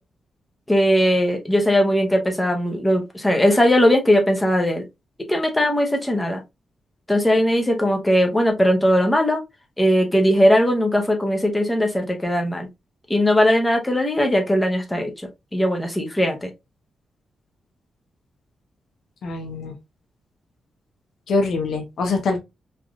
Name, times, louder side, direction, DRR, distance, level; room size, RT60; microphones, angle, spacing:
voice 1, 0.7-4.8 5.3-6.4 7.1-9.4 9.8-12.7 13.1-15.1 15.5-16.5, equal, 10° left, 0.6 m, -19 dB
voice 2, 19.2-19.7 21.3-22.4, left 3 dB, 75° left, 0.7 m, -23 dB
3.3 x 2.5 x 2.2 m
wide cardioid pair, 130°, 0 cm